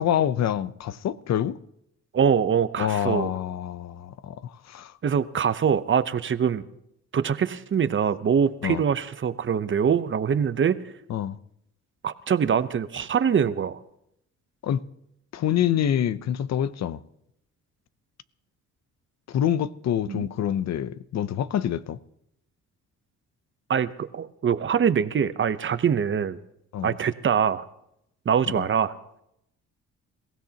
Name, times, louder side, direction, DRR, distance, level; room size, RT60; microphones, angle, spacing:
voice 1, 0.0-1.6 2.8-4.9 8.6-8.8 11.1-11.4 14.6-14.8 15.3-17.0 19.3-22.0 26.7-26.9 28.5-28.7, left 10 dB, 60° left, 0.7 m, -26 dB
voice 2, 2.1-3.3 5.0-6.6 7.1-10.9 12.0-13.8 20.1-20.3 23.7-26.4 26.8-27.6 28.3-28.9, right 7 dB, 40° right, 0.8 m, -24 dB
28.5 x 16.0 x 2.9 m
cardioid pair, 90°, 30 cm